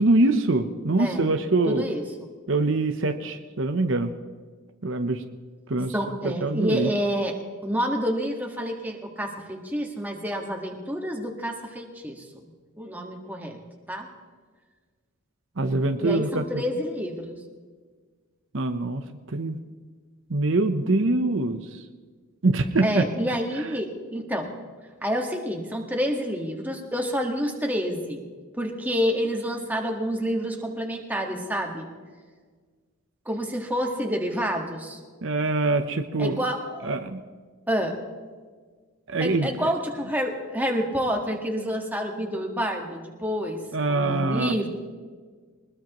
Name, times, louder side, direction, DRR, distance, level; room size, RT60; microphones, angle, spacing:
voice 1, 0.0-1.8 2.5-4.1 4.8-5.2 5.7-5.9 6.2-6.9 15.6-16.4 18.5-19.0 19.3-19.6 20.3-21.8 22.4-23.1 23.6-23.7 35.2-36.4 36.8-37.2 39.1-39.7 43.7-44.7, right 2 dB, 65° right, 7 dB, 0.8 m, -24 dB
voice 2, 1.0-1.3 1.7-2.0 5.9-12.3 12.8-13.6 13.9-14.1 16.0-17.4 22.8-24.5 25.0-28.2 28.6-31.9 33.2-35.0 36.2-36.9 37.7-38.0 39.2-43.6 43.9-44.7, equal, 10° right, 1 dB, 1.6 m, -28 dB
22.0 x 20.5 x 3.1 m, 1.5 s
head